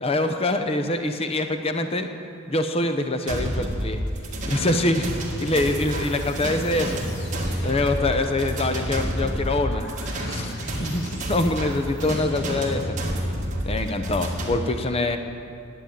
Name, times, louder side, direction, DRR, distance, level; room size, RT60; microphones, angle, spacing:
voice 1, 0.0-2.1 2.5-4.0 4.4-5.1 5.4-7.0 7.6-9.9 10.2-13.0 13.7-15.2, left 2 dB, 30° left, 7 dB, 0.7 m, -24 dB
sound 1, 3.3-14.6, equal, 35° right, 1.7 m, -29 dB
sound 2, 4.7-12.3, left 1 dB, 55° left, 2.7 m, -45 dB
10.5 x 8.9 x 8.5 m, 2.5 s
head